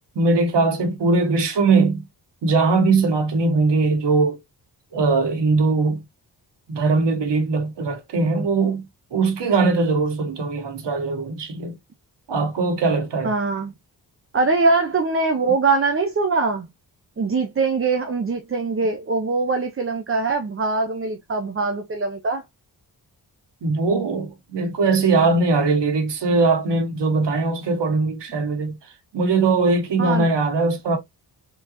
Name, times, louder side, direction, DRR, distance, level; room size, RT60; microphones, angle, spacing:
voice 1, 0.1-2.0 2.4-4.4 4.9-6.0 6.7-8.8 9.1-11.7 12.3-13.3 23.6-28.8 29.1-31.0, right 3 dB, 90° right, 1.5 m, -20 dB
voice 2, 13.2-13.7 14.3-16.7 17.2-22.4 30.0-30.3, right 3 dB, 30° right, 0.7 m, -22 dB
3.8 x 3.7 x 2.9 m
wide cardioid pair, 135°, 41 cm